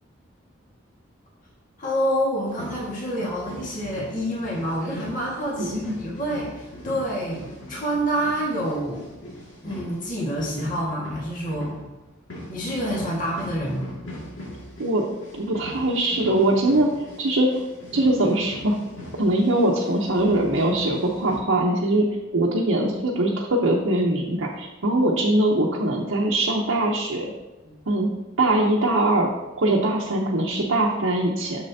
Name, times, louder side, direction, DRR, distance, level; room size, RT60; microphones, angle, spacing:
voice 1, 1.8-9.1 9.6-11.8 12.5-13.9 27.6-27.8, equal, 40° left, -5 dB, 1.8 m, -27 dB
sound 1, 2.5-21.4, left 1 dB, 80° left, 2.1 m, -40 dB
voice 2, 5.6-6.0 14.8-15.1 15.3-16.9 17.2-17.5 17.9-18.8 19.2-22.1 22.3-27.3 27.9-28.1 28.4-29.3 29.6-31.7, right 1 dB, 80° right, -3 dB, 0.8 m, -22 dB
7.3 x 6.7 x 2.8 m, 1.1 s
head